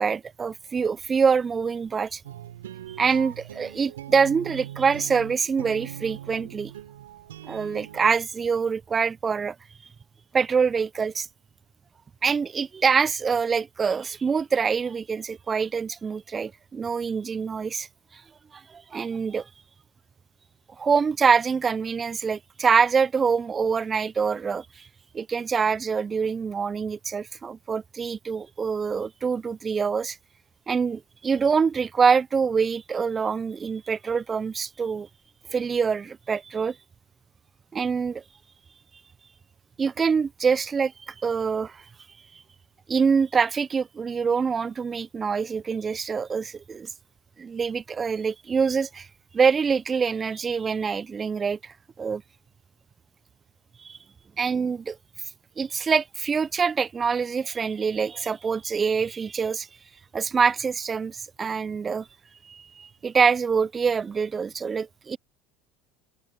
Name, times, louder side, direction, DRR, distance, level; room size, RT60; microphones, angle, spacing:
voice 1, 0.0-2.2 2.9-6.7 7.4-9.6 10.3-11.3 12.2-17.9 18.5-19.5 20.8-24.9 25.1-30.2 30.7-35.1 35.5-36.8 37.7-38.2 39.8-41.8 42.9-46.9 47.4-49.1 49.3-52.2 53.8-54.0 54.4-55.0 55.6-59.7 60.1-62.1 62.4-65.2, right 5 dB, 30° right, 0.5 m, -25 dB
sound 1, 2.2-8.1, right 12 dB, 80° right, 3.3 m, -41 dB
hypercardioid pair, 75°, 0 cm